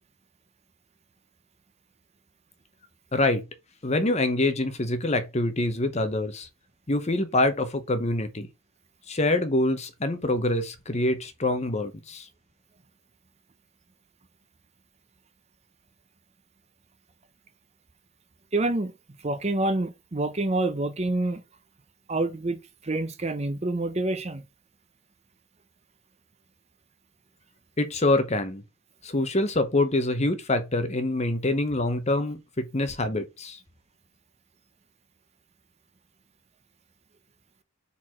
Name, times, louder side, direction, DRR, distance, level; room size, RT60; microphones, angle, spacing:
voice 1, 3.1-3.4 3.8-6.5 6.9-8.5 9.1-12.3 27.8-28.6 29.0-33.6, left 2 dB, 30° left, 0.9 m, -25 dB
voice 2, 18.5-18.9 19.2-21.4 22.1-22.6 22.8-24.4, right 2 dB, 30° right, 0.7 m, -27 dB
4.6 x 4.1 x 5.7 m
head